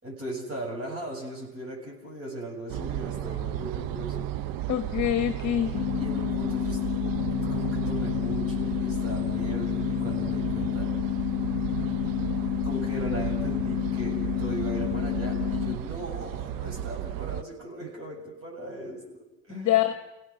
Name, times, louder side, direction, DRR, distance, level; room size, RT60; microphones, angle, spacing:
voice 1, 0.0-4.3 5.9-6.8 7.3-10.9 12.6-19.8, right 1 dB, 30° right, -1 dB, 7.7 m, -38 dB
sound 1, 2.7-17.4, right 12 dB, 45° right, 0.8 m, -34 dB
voice 2, 4.7-5.8 19.5-19.9, left 12 dB, 35° left, 8 dB, 1.6 m, -25 dB
sound 2, 5.7-15.7, left 16 dB, 55° left, 1.2 m, -29 dB
29.5 x 17.5 x 6.4 m, 0.95 s
hypercardioid pair, 85°, 47 cm